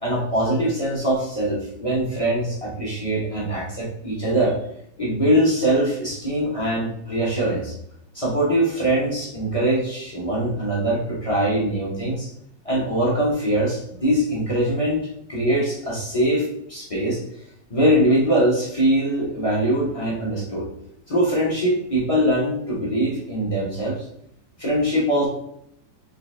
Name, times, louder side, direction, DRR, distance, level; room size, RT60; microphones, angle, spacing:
voice 1, 0.0-4.6 5.0-7.7 8.1-12.3 12.6-15.0 15.3-17.2 17.7-20.6 21.1-24.0 24.6-25.3, right 1 dB, 40° left, -6 dB, 0.4 m, -22 dB
4.0 x 3.2 x 3.2 m, 0.73 s
omnidirectional pair, 2.1 m